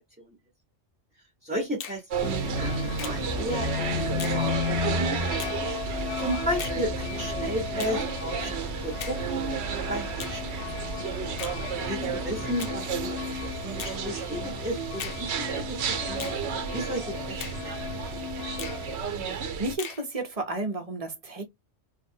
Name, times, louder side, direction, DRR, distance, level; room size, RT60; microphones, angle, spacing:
voice 1, 1.4-4.4 4.7-5.2 6.2-10.6 11.8-16.3 16.7-17.7, right 1 dB, 10° right, 0.9 m, -34 dB
Finger snapping, 1.8-2.0 3.0-3.2 4.2-4.4 5.4-5.6 6.6-6.8 7.8-8.0 9.0-9.2 10.2-10.4 11.4-11.6 12.6-12.8 13.8-14.0 15.0-15.2 16.2-16.4 17.4-17.6 18.6-18.8 19.8-20.0, left 7 dB, 60° left, 0.7 m, -38 dB
sound 1, 2.1-19.8, right 6 dB, 70° right, 0.9 m, -33 dB
sound 2, 2.2-19.0, left 4 dB, 90° left, 1.0 m, -34 dB
voice 2, 19.2-21.4, right 2 dB, 35° right, 0.8 m, -32 dB
3.3 x 2.1 x 2.6 m
omnidirectional pair, 1.2 m